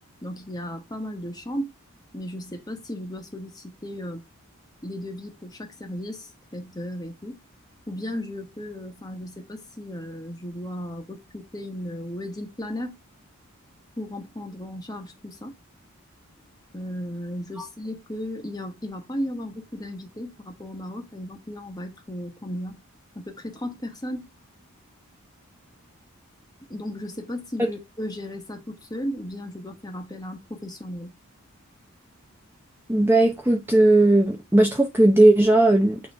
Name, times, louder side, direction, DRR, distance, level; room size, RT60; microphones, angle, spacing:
voice 1, 0.2-1.7 2.1-4.2 4.8-7.4 7.9-13.0 14.0-15.5 16.7-22.8 23.1-24.3 26.7-31.1, equal, 15° left, 1.2 m, -35 dB
voice 2, 32.9-36.0, right 2 dB, 10° right, 0.6 m, -17 dB
8.4 x 3.1 x 3.7 m
head